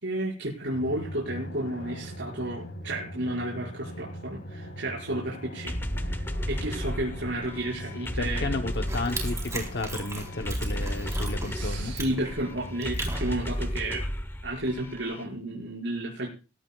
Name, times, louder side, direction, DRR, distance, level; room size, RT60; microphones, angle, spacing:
voice 1, 0.0-5.7 6.0-8.5 11.5-14.0 14.4-16.3, right 1 dB, 65° right, -4 dB, 5.6 m, -32 dB
Drum, 0.7-13.8, equal, 70° left, 4.3 m, -42 dB
sound 1, 5.7-15.2, equal, 10° left, 0.9 m, -33 dB
voice 2, 8.0-11.9, left 2 dB, 55° left, 5 dB, 0.9 m, -33 dB
sound 2, 8.7-13.7, right 2 dB, 15° right, 3.9 m, -38 dB
20.0 x 17.0 x 2.4 m, 0.33 s
head